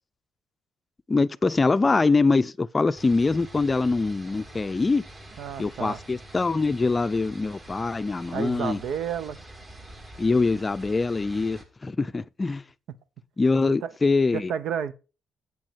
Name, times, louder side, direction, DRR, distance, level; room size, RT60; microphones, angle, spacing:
voice 1, 1.1-5.0 5.6-8.8 10.2-12.6 13.4-14.5, left 3 dB, 25° left, 0.5 m, -23 dB
sound 1, 2.9-11.6, right 1 dB, 30° right, 3.2 m, -45 dB
voice 2, 5.4-6.0 8.3-9.4 13.8-13.9 14.3-14.9, right 8 dB, 75° right, 0.9 m, -31 dB
9.1 x 8.3 x 4.6 m
cardioid pair, 90°, 0 cm